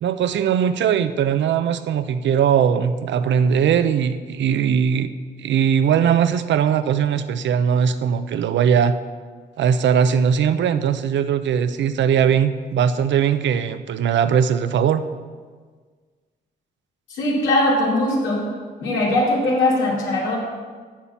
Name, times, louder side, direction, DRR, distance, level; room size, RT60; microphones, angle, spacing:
voice 1, 0.0-5.1 5.4-9.0 9.6-15.0, right 8 dB, 70° right, 11 dB, 0.6 m, -19 dB
voice 2, 17.1-18.4 18.8-20.4, left 1 dB, 90° left, -4 dB, 2.8 m, -20 dB
7.4 x 6.8 x 7.3 m, 1.6 s
supercardioid pair, 65°, 19 cm